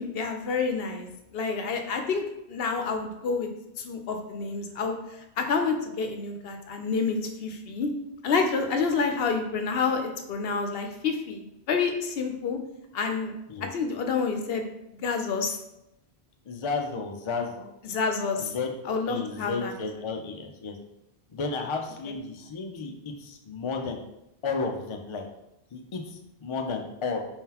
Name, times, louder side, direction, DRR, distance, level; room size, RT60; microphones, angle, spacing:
voice 1, 0.0-2.2 2.5-3.5 3.8-5.0 5.4-7.9 8.2-12.6 12.9-13.3 13.7-14.6 15.0-15.6 17.8-18.5 18.9-19.7 22.1-22.2, left 5 dB, 70° left, 5 dB, 0.8 m, -28 dB
voice 2, 16.5-17.7 18.4-18.8 19.1-20.7 21.3-24.0 24.4-25.2 25.7-27.2, left 4 dB, 45° left, 3 dB, 0.4 m, -32 dB
4.5 x 3.7 x 2.9 m, 0.85 s
omnidirectional pair, 1.1 m